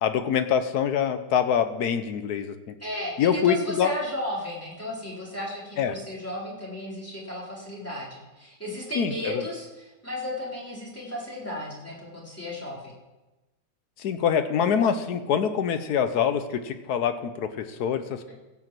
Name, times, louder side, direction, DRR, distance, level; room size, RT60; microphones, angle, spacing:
voice 1, 0.0-2.7 3.2-3.9 5.8-6.0 8.9-9.4 14.0-18.3, left 8 dB, 65° left, 10 dB, 1.1 m, -25 dB
voice 2, 2.8-12.9 18.3-18.4, left 1 dB, 5° left, -6 dB, 3.6 m, -34 dB
16.5 x 5.9 x 7.6 m, 1.1 s
omnidirectional pair, 2.1 m